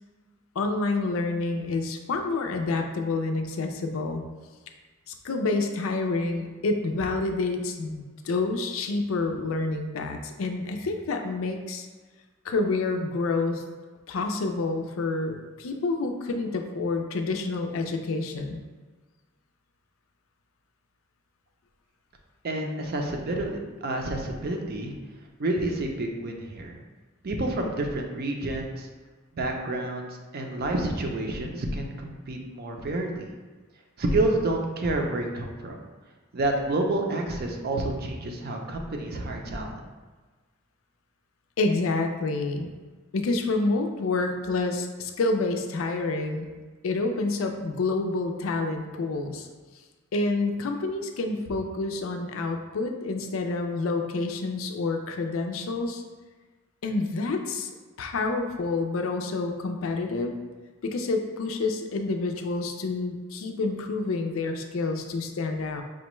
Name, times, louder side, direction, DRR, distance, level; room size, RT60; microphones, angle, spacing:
voice 1, 0.6-4.2 5.1-11.9 12.4-13.6 14.1-18.6 41.6-42.7 43.1-46.5 46.8-49.5 50.1-56.0 56.8-57.7 58.0-60.3 60.8-65.8, left 3 dB, 85° left, 5 dB, 0.4 m, -28 dB
voice 2, 22.4-24.9 25.4-26.8 27.2-28.9 29.3-33.3 34.0-35.8 36.3-39.8, right 2 dB, 50° right, 2 dB, 0.5 m, -29 dB
5.0 x 2.2 x 3.0 m, 1.3 s
head